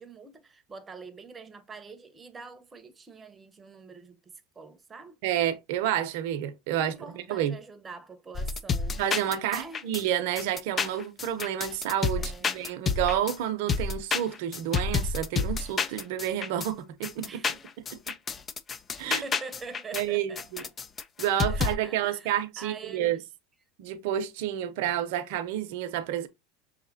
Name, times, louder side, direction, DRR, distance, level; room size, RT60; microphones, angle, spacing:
voice 1, 0.0-5.2 6.8-9.0 9.3-9.9 12.1-12.6 17.2-17.5 19.0-20.7 21.5-23.1, right 4 dB, 20° right, 0.8 m, -45 dB
voice 2, 5.2-7.6 9.0-17.4 17.9-18.1 19.0-19.2 19.9-20.6 21.2-23.2 23.8-26.3, right 11 dB, 70° right, 0.7 m, -30 dB
sound 1, 8.3-10.0 10.3-13.4 13.7-16.7 17.0-20.0 20.3-21.8, left 5 dB, 25° left, 0.4 m, -29 dB
5.7 x 2.8 x 2.7 m
supercardioid pair, 115°, 0 cm